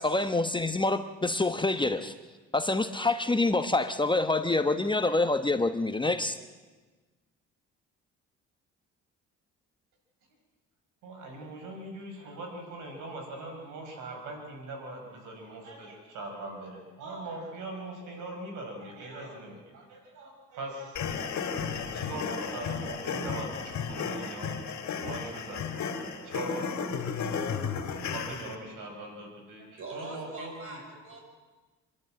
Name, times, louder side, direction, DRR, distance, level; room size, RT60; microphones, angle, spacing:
voice 1, 0.0-2.1 2.5-6.4, left 2 dB, 15° left, 8 dB, 1.0 m, -26 dB
voice 2, 11.0-21.3 21.7-24.6 24.9-25.7 26.1-27.2 28.0-30.8, right 2 dB, 85° right, 2 dB, 5.4 m, -41 dB
sound 1, 21.0-28.6, left 6 dB, 70° left, 2.5 m, -34 dB
voice 3, 29.8-31.2, right 2 dB, 45° right, 1 dB, 7.1 m, -42 dB
27.0 x 12.0 x 8.8 m, 1.3 s
cardioid pair, 90°, 30 cm